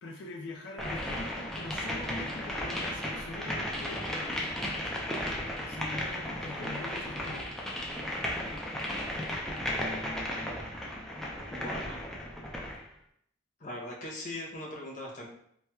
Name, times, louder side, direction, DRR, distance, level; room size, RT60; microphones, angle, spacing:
voice 1, 0.0-4.4 4.8-4.9 5.7-7.6, left 2 dB, 75° left, -1 dB, 0.4 m, -43 dB
sound 1, 0.8-12.8, left 1 dB, ahead, 0.3 m, -35 dB
voice 2, 9.6-10.8 11.5-12.0 13.6-15.3, left 1 dB, 40° left, -3 dB, 0.7 m, -41 dB
4.2 x 2.2 x 2.2 m, 0.69 s
head